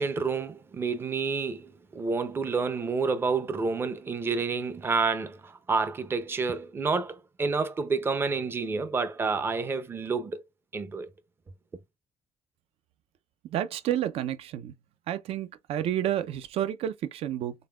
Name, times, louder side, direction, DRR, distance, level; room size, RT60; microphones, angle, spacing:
voice 1, 0.0-10.4 10.7-11.1, right 4 dB, 20° right, 0.5 m, -29 dB
voice 2, 13.5-14.7 15.1-17.5, right 11 dB, 65° right, 0.5 m, -30 dB
3.9 x 3.7 x 2.3 m
cardioid pair, 175°, 11 cm